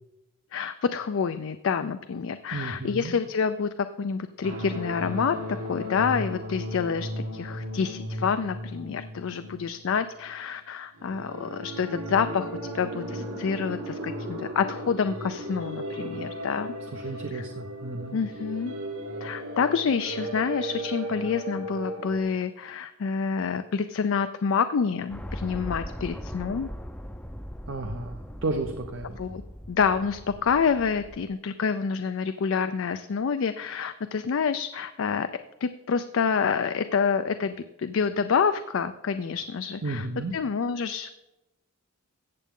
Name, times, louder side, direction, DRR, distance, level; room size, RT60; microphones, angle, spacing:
voice 1, 0.5-3.7 4.0-16.7 17.3-17.4 18.1-18.7 19.2-26.7 29.2-29.4 29.7-35.3 35.6-40.1 40.3-41.1, left 6 dB, 60° left, 10 dB, 0.4 m, -28 dB
voice 2, 2.5-3.1 16.9-18.2 27.7-29.2 39.8-40.3, right 2 dB, 55° right, 5 dB, 0.7 m, -33 dB
sound 1, 4.4-10.3 11.0-22.2, equal, 75° right, 2.0 m, -36 dB
sound 2, 25.1-31.3, equal, 5° left, 0.5 m, -39 dB
14.5 x 8.3 x 3.7 m, 1.0 s
head